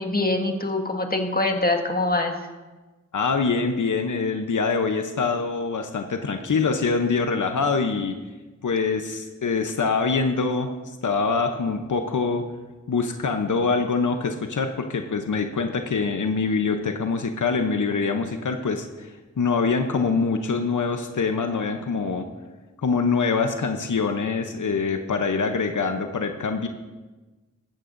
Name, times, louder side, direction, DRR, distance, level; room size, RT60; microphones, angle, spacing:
voice 1, 0.0-2.3, left 2 dB, 30° left, 3 dB, 1.7 m, -24 dB
voice 2, 3.1-8.2 8.6-10.7 11.0-12.4 12.9-22.2 22.8-26.7, left 4 dB, 85° left, 6 dB, 0.8 m, -24 dB
15.0 x 13.0 x 2.6 m, 1.2 s
cardioid pair, 45°, 30 cm